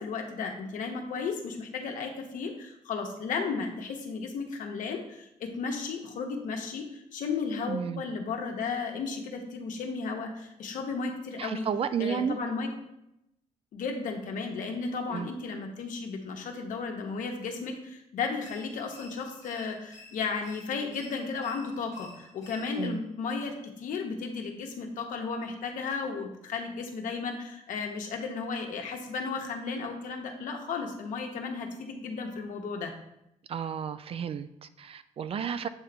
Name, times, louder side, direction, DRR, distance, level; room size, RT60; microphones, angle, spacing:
voice 1, 0.0-11.7 12.0-12.7 13.7-32.9, left 4 dB, 80° left, 3 dB, 1.0 m, -34 dB
voice 2, 7.7-8.0 11.4-12.4 15.1-15.3 22.8-23.0 33.5-35.7, right 7 dB, 45° right, 13 dB, 0.4 m, -32 dB
sound 1, 18.4-23.0, left 2 dB, 25° left, 1.1 m, -53 dB
8.0 x 3.4 x 3.8 m, 0.83 s
cardioid pair, 120°, 13 cm